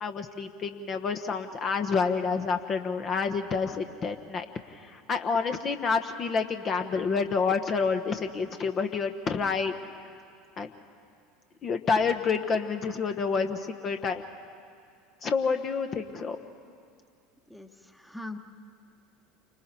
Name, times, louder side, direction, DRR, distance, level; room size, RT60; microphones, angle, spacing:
voice 1, 0.0-4.5 4.7-9.7 10.6-10.7 11.6-14.2 15.2-16.4, left 5 dB, 35° left, 7 dB, 1.1 m, -28 dB
voice 2, 17.5-18.4, left 2 dB, 5° left, 7 dB, 1.3 m, -41 dB
29.0 x 25.0 x 4.3 m, 2.4 s
figure-of-eight pair, 70°, 0 cm